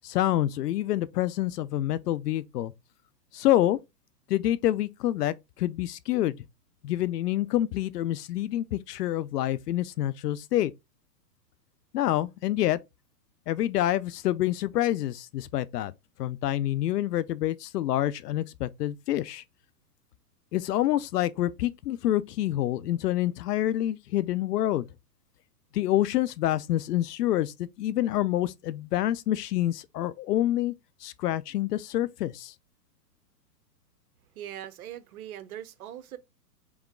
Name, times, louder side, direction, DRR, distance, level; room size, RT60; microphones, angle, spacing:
voice 1, 0.0-2.7 3.3-3.8 4.3-6.4 6.8-10.7 11.9-12.8 13.5-15.9 16.2-19.4 20.5-24.9 25.7-30.7 31.0-32.5, left 13 dB, 75° left, 0.6 m, -27 dB
voice 2, 34.4-36.2, right 11 dB, 60° right, 0.8 m, -41 dB
3.6 x 3.1 x 3.6 m
hypercardioid pair, 140°, 49 cm